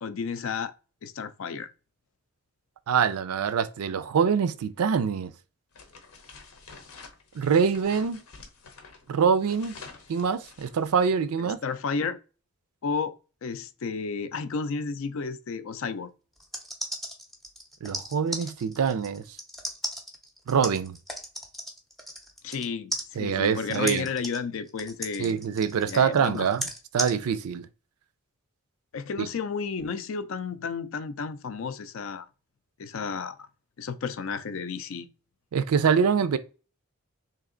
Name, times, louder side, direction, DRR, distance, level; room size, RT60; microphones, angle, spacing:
voice 1, 0.0-0.7 1.0-1.7 11.4-12.2 12.8-13.2 13.4-16.1 22.4-25.3 25.9-26.5 28.9-32.3 32.8-33.4 33.8-35.1, left 5 dB, 65° left, 0.4 m, -32 dB
voice 2, 2.9-5.3 7.3-8.2 9.1-9.8 10.1-11.6 17.8-19.2 20.5-21.0 23.2-24.1 25.2-26.7 26.9-27.7 29.2-29.3 35.5-36.4, right 6 dB, 85° right, 0.4 m, -24 dB
sound 1, 5.7-11.2, left 4 dB, 85° left, 0.8 m, -48 dB
sound 2, 16.4-22.7 22.9-27.1, equal, ahead, 0.5 m, -35 dB
3.2 x 2.8 x 3.8 m
head